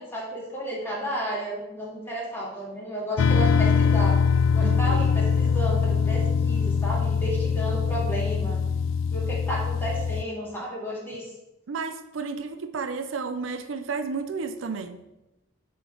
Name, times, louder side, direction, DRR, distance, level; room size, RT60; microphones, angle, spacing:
voice 1, 0.0-4.2 4.5-8.6 9.1-11.3, equal, 10° left, 2.2 m, -32 dB
sound 1, 3.2-10.2, left 6 dB, 75° left, 0.3 m, -23 dB
voice 2, 4.6-5.1 8.0-8.1 11.7-15.0, right 4 dB, 85° right, 0.5 m, -32 dB
6.9 x 3.6 x 6.2 m
head